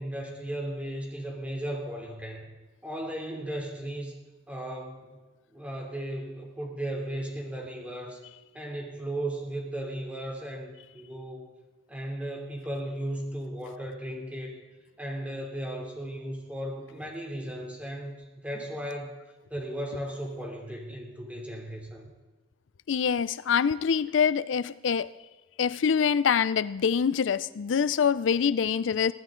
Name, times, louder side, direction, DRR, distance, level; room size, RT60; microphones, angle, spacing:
voice 1, 0.0-2.5 2.8-4.1 4.5-5.2 5.5-8.2 8.5-11.5 11.9-14.6 15.0-19.2 19.5-22.1, right 1 dB, 5° right, 0 dB, 2.9 m, -36 dB
voice 2, 22.9-25.1 25.6-29.1, left 7 dB, 85° left, 16 dB, 0.4 m, -25 dB
22.0 x 15.5 x 3.8 m, 1.2 s
head